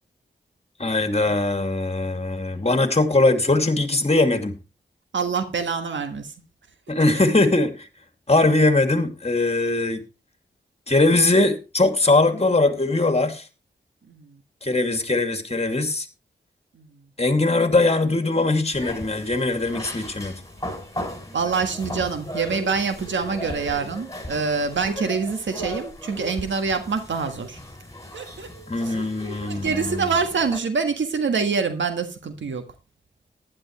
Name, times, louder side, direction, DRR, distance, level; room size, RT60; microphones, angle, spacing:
voice 1, 0.8-4.6 6.9-7.9 8.3-10.0 10.9-13.5 14.6-16.1 17.2-20.3 28.7-30.1, left 2 dB, 35° left, 2.5 m, -21 dB
voice 2, 5.1-6.3 14.1-14.3 16.7-16.9 21.3-27.6 28.1-28.5 28.8-29.0 29.4-32.6, right 5 dB, 85° right, 1.6 m, -25 dB
sound 1, 18.7-30.6, equal, 15° left, 6.4 m, -36 dB
15.0 x 10.5 x 3.2 m
cardioid pair, 45°, 19 cm